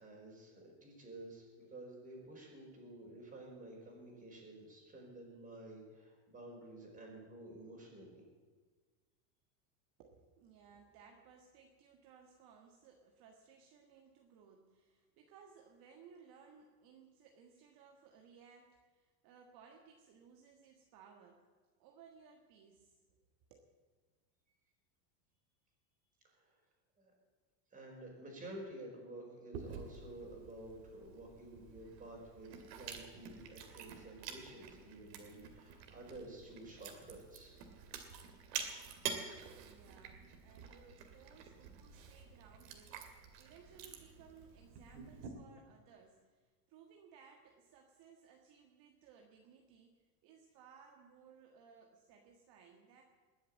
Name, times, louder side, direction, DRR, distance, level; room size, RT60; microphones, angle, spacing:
voice 1, 0.0-8.2 26.4-26.5 27.0-27.1 27.7-37.6, right 1 dB, 15° right, -1 dB, 5.1 m, -51 dB
voice 2, 10.0-21.5 21.8-23.6 39.4-53.0, right 6 dB, 45° right, 2 dB, 1.7 m, -61 dB
Chewing mastication, 29.5-45.3, right 7 dB, 80° right, 2.6 m, -49 dB
20.5 x 7.6 x 8.6 m, 1.4 s
supercardioid pair, 140°, 49 cm